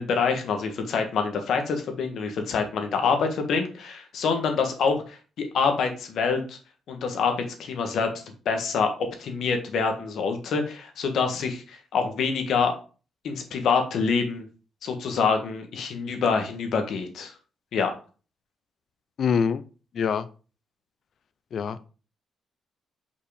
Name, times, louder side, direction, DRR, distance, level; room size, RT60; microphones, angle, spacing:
voice 1, 0.0-5.2 5.5-6.6 6.9-7.3 7.6-8.1 8.4-8.9 9.2-12.7 13.2-14.4 14.8-17.3 17.7-17.9, left 5 dB, 65° left, 5 dB, 1.4 m, -26 dB
voice 2, 19.2-19.6 19.9-20.3 21.5-21.8, left 6 dB, 50° left, 14 dB, 0.5 m, -24 dB
5.5 x 4.7 x 5.0 m, 0.36 s
cardioid pair, 145°, 0 cm